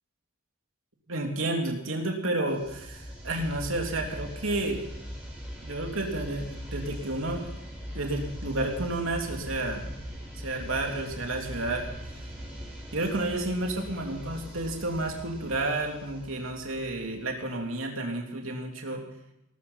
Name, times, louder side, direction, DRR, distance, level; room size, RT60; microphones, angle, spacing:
voice 1, 1.1-4.8 5.6-7.5 7.9-9.8 10.3-11.8 12.9-19.0, right 2 dB, 75° right, 2 dB, 3.3 m, -31 dB
sound 1, 2.5-17.3, equal, 5° right, 5.8 m, -41 dB
19.0 x 13.5 x 5.7 m, 0.88 s
head